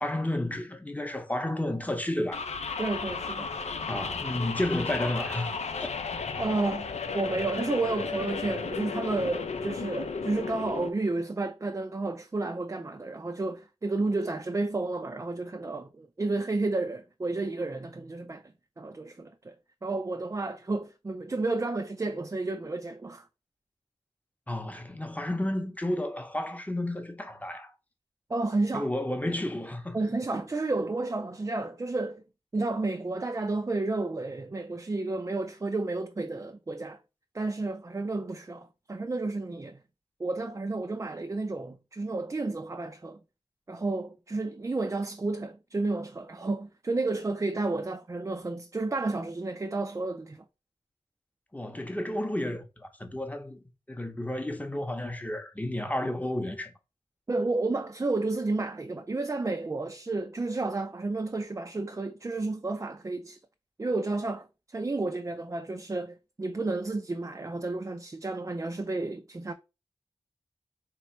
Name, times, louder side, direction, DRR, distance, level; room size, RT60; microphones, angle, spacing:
voice 1, 0.0-2.5 3.9-5.9 24.5-27.7 28.7-30.0 51.5-56.7, left 1 dB, 15° left, 0.8 m, -32 dB
sound 1, 2.3-10.9, left 5 dB, 85° left, 0.6 m, -34 dB
voice 2, 2.8-3.5 6.4-6.9 7.1-18.4 18.8-19.5 19.8-23.3 28.3-28.9 29.9-32.2 32.5-37.0 37.3-39.8 40.2-43.2 43.7-50.4 57.3-63.4 63.8-69.5, right 2 dB, 25° right, 0.4 m, -31 dB
3.3 x 3.0 x 4.3 m
wide cardioid pair, 75°, 11 cm